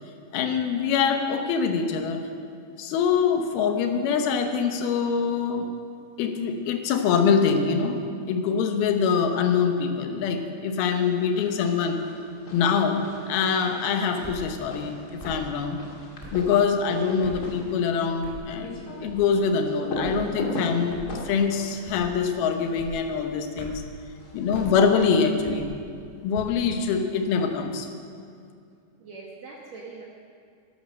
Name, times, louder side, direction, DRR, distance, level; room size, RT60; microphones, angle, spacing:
voice 1, 0.3-2.3 2.8-5.7 6.2-8.0 8.3-12.0 12.5-15.8 16.3-23.8 24.3-25.7 26.2-27.9, left 6 dB, 70° left, 5 dB, 2.6 m, -24 dB
sound 1, 11.1-11.6 11.9-22.9 24.2-25.4, left 1 dB, 35° left, 1.6 m, -38 dB
sound 2, 14.2-14.5 15.2-15.5 16.2-16.4 17.2-17.5 18.2-18.5 19.1-19.4 20.0-20.2 20.9-21.2 21.8-22.2 22.8-23.0 23.6-23.9 24.5-24.7 25.4-25.7 26.3-26.6, right 1 dB, 5° left, 3.6 m, -41 dB
voice 2, 29.0-30.0, right 4 dB, 75° right, -3 dB, 1.6 m, -43 dB
13.5 x 12.5 x 6.4 m, 2.4 s
omnidirectional pair, 5.1 m